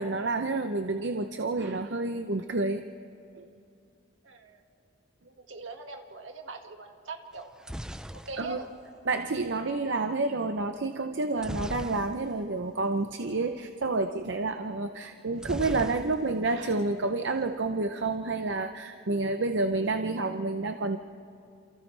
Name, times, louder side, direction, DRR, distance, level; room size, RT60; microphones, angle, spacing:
voice 1, 0.0-2.8 3.4-3.5 8.4-8.6 9.1-21.0, right 3 dB, 65° right, 7 dB, 0.7 m, -29 dB
voice 2, 4.2-4.6 5.2-7.5 8.1-8.7, right 3 dB, 80° right, 4 dB, 1.9 m, -42 dB
sound 1, 7.3-9.4 11.4-12.5 12.8-13.0 13.2-13.5 15.4-16.5 16.8-17.5, equal, 5° right, 0.4 m, -39 dB
29.0 x 28.5 x 3.3 m, 2.6 s
head